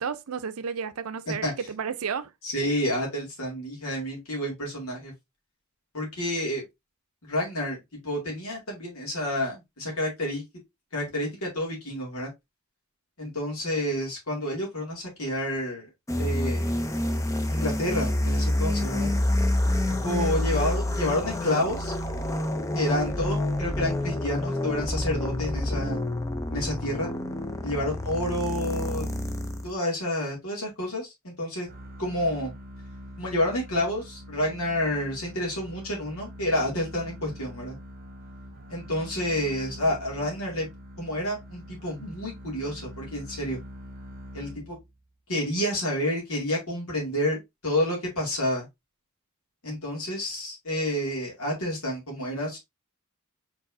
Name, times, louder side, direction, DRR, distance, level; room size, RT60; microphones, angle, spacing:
voice 1, 0.0-2.3, right 6 dB, 80° right, 0.5 m, -32 dB
voice 2, 2.4-5.1 5.9-6.6 7.2-10.4 10.9-12.3 13.2-15.9 16.2-16.7 17.5-19.1 20.0-21.9 22.7-26.0 26.5-27.1 27.6-29.0 29.6-31.7 32.0-32.5 33.2-37.8 38.7-40.7 41.0-43.6 44.3-44.8 45.3-48.7 49.6-52.6, left 1 dB, 80° left, 2.3 m, -29 dB
sound 1, 16.1-29.7, left 1 dB, 15° left, 0.5 m, -28 dB
sound 2, 31.6-45.1, equal, 40° right, 1.0 m, -44 dB
4.6 x 4.0 x 2.6 m
head